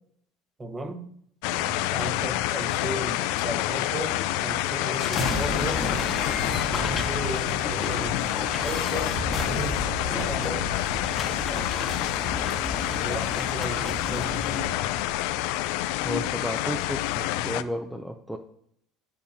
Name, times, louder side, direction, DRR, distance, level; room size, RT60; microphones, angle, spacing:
voice 1, 0.6-1.1 1.9-5.9 6.7-8.2 8.6-10.8 13.0-14.5, right 2 dB, 20° right, 7 dB, 0.9 m, -36 dB
sound 1, 1.4-17.6, left 15 dB, 80° left, 0.3 m, -28 dB
voice 2, 1.5-1.8 14.1-14.6 16.0-18.4, equal, ahead, 3 dB, 0.5 m, -34 dB
sound 2, 4.8-14.7, left 2 dB, 25° left, 1.1 m, -32 dB
8.7 x 7.1 x 2.8 m, 0.69 s
cardioid pair, 120°, 0 cm